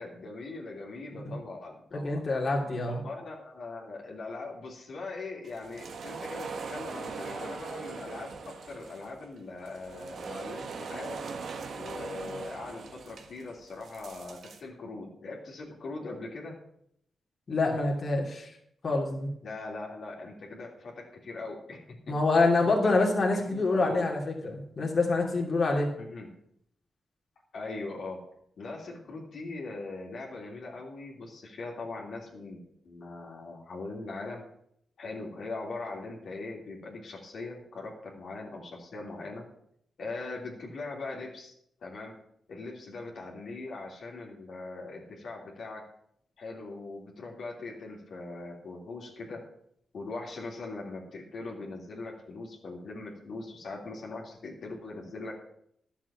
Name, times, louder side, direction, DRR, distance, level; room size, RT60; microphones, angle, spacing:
voice 1, 0.0-2.2 2.8-11.2 11.8-16.6 19.4-22.5 22.8-23.0 23.5-24.1 26.1-26.3 27.5-28.2 28.6-34.4 35.0-39.5 40.0-41.5 41.8-42.1 42.5-45.8 46.4-49.4 49.9-55.3, left 3 dB, 65° left, -2 dB, 3.1 m, -41 dB
voice 2, 1.9-3.0 17.5-18.5 18.8-19.3 22.1-25.9, left 3 dB, 45° left, -2 dB, 3.0 m, -26 dB
sound 1, 5.4-14.6, right 4 dB, 70° right, 1.4 m, -41 dB
11.5 x 7.3 x 7.4 m, 0.71 s
cardioid pair, 80°, 0 cm